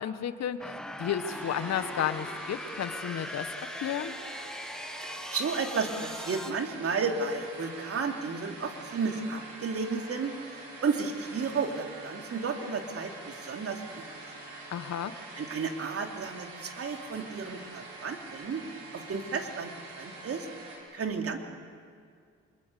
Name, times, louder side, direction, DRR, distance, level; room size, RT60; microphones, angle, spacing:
voice 1, 0.0-3.5 3.8-4.1 14.7-15.1, left 9 dB, 60° left, 11 dB, 1.4 m, -32 dB
sound 1, 0.6-6.5, left 1 dB, ahead, 1.6 m, -40 dB
sound 2, 1.3-20.8, right 2 dB, 90° right, 5.0 m, -45 dB
voice 2, 5.0-14.2 15.4-18.6 18.9-20.5 20.9-21.4, right 5 dB, 50° right, 4 dB, 2.8 m, -33 dB
26.0 x 21.5 x 6.9 m, 2.1 s
supercardioid pair, 65°, 30 cm